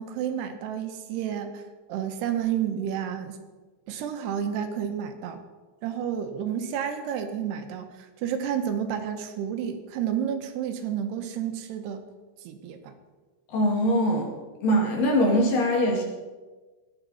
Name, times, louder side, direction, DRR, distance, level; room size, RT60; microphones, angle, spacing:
voice 1, 0.0-1.6 1.9-3.4 3.9-5.4 5.8-12.0 12.4-12.9, right 9 dB, 80° right, 6 dB, 3.2 m, -30 dB
voice 2, 13.5-14.3 14.6-16.0, equal, 60° left, -1 dB, 3.8 m, -22 dB
17.5 x 12.0 x 4.2 m, 1.3 s
omnidirectional pair, 4.8 m